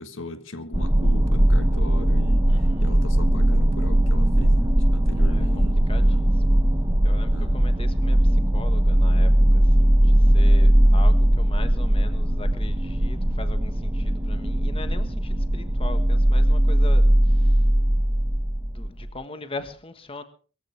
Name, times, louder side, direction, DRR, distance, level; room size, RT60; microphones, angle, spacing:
voice 1, 0.0-5.9 6.1-6.3 7.3-7.7, left 2 dB, 75° left, 1.6 m, -38 dB
sound 1, 0.7-19.1, right 1 dB, 20° right, 0.9 m, -19 dB
voice 2, 2.5-2.9 5.1-6.4 7.0-17.7 18.7-20.2, left 2 dB, 30° left, 1.4 m, -40 dB
22.5 x 14.5 x 3.4 m
head